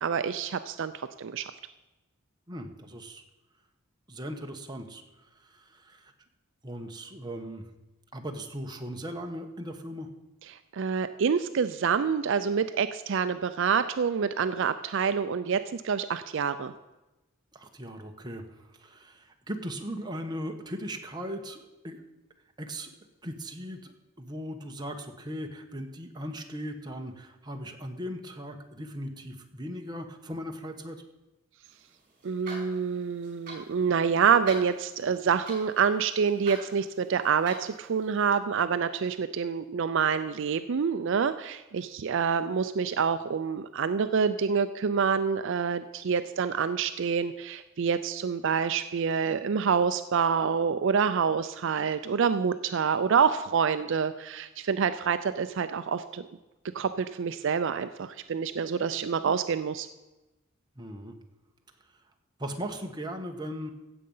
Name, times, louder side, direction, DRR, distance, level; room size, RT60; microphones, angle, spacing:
voice 1, 0.0-1.5 10.7-16.7 32.2-56.3 56.7-59.9, right 6 dB, 60° right, 11 dB, 0.4 m, -27 dB
voice 2, 2.5-3.2 4.1-6.1 6.6-7.7 8.1-10.1 17.5-22.0 22.6-22.9 23.2-23.9 24.2-31.0 60.7-61.1 62.4-63.7, equal, 20° right, 3 dB, 1.1 m, -38 dB
sound 1, 31.7-38.4, right 3 dB, 45° right, 4.6 m, -47 dB
16.0 x 7.7 x 5.5 m, 1.0 s
head